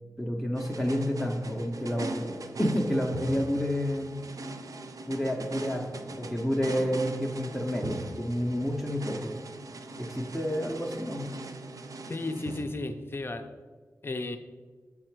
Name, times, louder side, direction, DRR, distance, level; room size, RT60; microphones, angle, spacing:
voice 1, 0.2-4.2 5.1-9.3 10.0-11.3, equal, ahead, -1 dB, 0.6 m, -30 dB
sound 1, 0.5-13.3, right 2 dB, 65° right, 0.5 m, -41 dB
voice 2, 12.1-13.5 14.0-14.4, left 2 dB, 40° left, 7 dB, 0.5 m, -34 dB
6.4 x 4.8 x 4.5 m, 1.4 s
wide cardioid pair, 105°, 6 cm